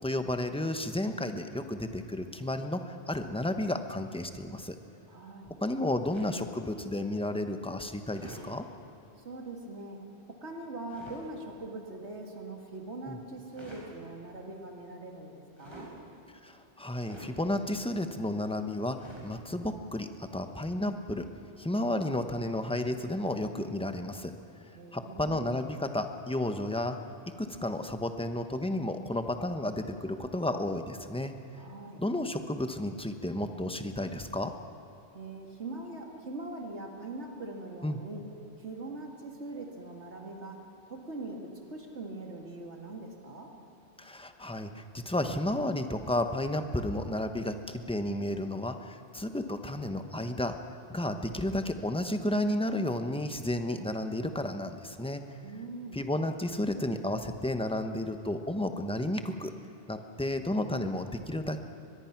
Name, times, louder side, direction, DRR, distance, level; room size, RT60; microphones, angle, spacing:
voice 1, 0.0-2.8 3.1-4.8 5.6-8.6 13.1-13.2 16.4-19.0 19.2-21.3 21.6-24.3 24.9-27.0 27.4-31.3 32.0-34.5 37.8-38.0 44.0-50.6 50.9-55.2 55.9-59.5 59.9-61.6, left 1 dB, 5° left, 7 dB, 1.0 m, -32 dB
voice 2, 5.1-5.5 9.2-15.9 24.7-25.5 31.5-32.0 35.1-38.2 38.6-43.5 55.4-56.1, right 2 dB, 70° right, 2 dB, 2.6 m, -42 dB
sound 1, 6.1-6.5 8.1-8.5 10.9-11.2 13.4-13.9 15.5-15.9 17.0-17.3 19.0-19.3, right 1 dB, 25° right, 5.4 m, -48 dB
23.5 x 21.0 x 6.0 m, 2.9 s
omnidirectional pair, 1.2 m